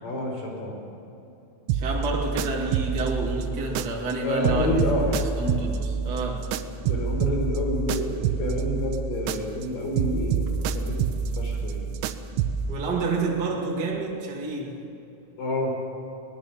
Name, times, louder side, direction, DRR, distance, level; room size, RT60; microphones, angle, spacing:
voice 1, 0.0-0.7 4.2-5.2 6.8-11.8 15.4-15.7, left 1 dB, 45° left, 1 dB, 5.7 m, -28 dB
voice 2, 1.7-4.8 5.4-6.5 12.7-14.8, right 3 dB, 35° right, -2 dB, 1.8 m, -29 dB
Conscience Pilot Drumloop, 1.7-4.2 4.4-9.7 10.0-12.8, right 6 dB, 80° right, 3.1 m, -28 dB
22.5 x 20.0 x 7.3 m, 2.8 s
omnidirectional pair, 5.4 m